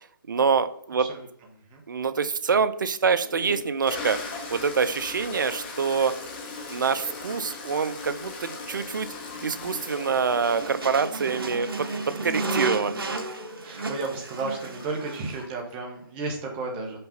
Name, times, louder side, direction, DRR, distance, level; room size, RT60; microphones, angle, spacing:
voice 1, 0.3-1.1 1.9-4.2 4.5-6.2 6.7-9.1 9.4-13.0, right 5 dB, 60° right, 11 dB, 0.7 m, -25 dB
Toilet flush, 2.5-2.6 3.2-15.7, left 3 dB, 25° left, 1.1 m, -39 dB
sound 1, 10.3-15.4, right 2 dB, 80° right, 1.1 m, -33 dB
voice 2, 13.6-17.0, right 3 dB, 15° right, 0 dB, 1.2 m, -33 dB
5.5 x 5.2 x 4.0 m, 0.66 s
hypercardioid pair, 160°, 12 cm